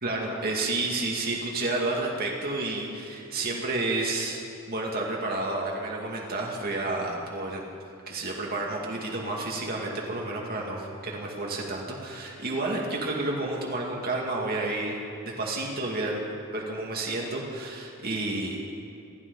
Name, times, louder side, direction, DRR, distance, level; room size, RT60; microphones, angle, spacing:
voice 1, 0.0-7.6 8.1-15.0 15.4-16.2 16.5-18.6, right 2 dB, 45° right, -2 dB, 2.3 m, -30 dB
28.0 x 12.5 x 4.1 m, 2.7 s
head